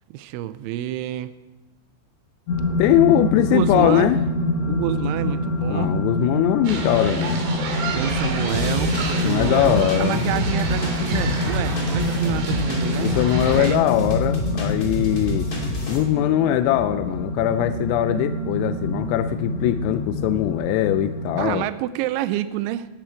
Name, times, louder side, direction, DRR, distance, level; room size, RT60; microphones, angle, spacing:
voice 1, 0.1-1.3 3.4-4.1 4.7-6.0 7.9-13.2 13.5-13.8 21.4-22.9, right 13 dB, 85° right, 14 dB, 2.7 m, -28 dB
sound 1, 2.5-21.4, left 1 dB, 70° left, 7.0 m, -26 dB
voice 2, 2.8-4.2 5.7-7.4 9.2-10.3 13.0-15.5 15.9-21.7, left 13 dB, 90° left, 10 dB, 3.3 m, -21 dB
sound 2, 6.6-13.6, right 4 dB, 60° right, 3.8 m, -31 dB
sound 3, 8.5-16.0, left 1 dB, 30° left, 1.8 m, -29 dB
17.5 x 11.5 x 4.5 m, 1.1 s
omnidirectional pair, 5.8 m